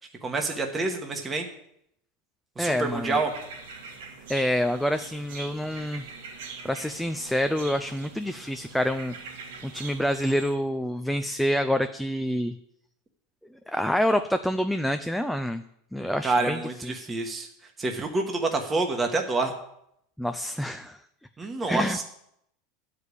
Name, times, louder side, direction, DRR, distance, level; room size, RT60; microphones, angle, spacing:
voice 1, 0.2-1.5 2.6-3.3 16.2-17.5 17.8-19.5 21.4-22.0, right 3 dB, 15° right, 3 dB, 1.1 m, -27 dB
voice 2, 2.6-3.2 4.3-6.0 6.6-9.1 9.6-12.5 13.7-15.6 15.9-17.1 20.2-21.0 21.6-22.0, equal, ahead, 8 dB, 0.4 m, -27 dB
sound 1, 2.7-10.6, right 5 dB, 85° right, 2.3 m, -43 dB
11.0 x 5.0 x 8.3 m, 0.76 s
supercardioid pair, 140°, 0 cm